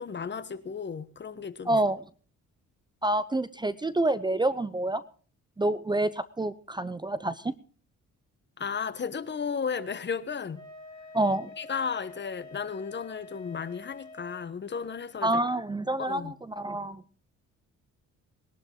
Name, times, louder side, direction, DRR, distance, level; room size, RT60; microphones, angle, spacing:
voice 1, 0.0-1.8 8.6-10.6 11.6-15.3 16.0-16.3, left 6 dB, 35° left, 1.2 m, -34 dB
voice 2, 1.7-2.0 3.0-5.0 5.6-7.5 11.1-11.5 15.2-17.2, right 1 dB, 15° right, 0.7 m, -28 dB
Wind instrument woodwind instrument, 10.5-14.5, left 2 dB, 15° left, 5.7 m, -47 dB
20.0 x 11.5 x 3.9 m
cardioid pair, 90°, 30 cm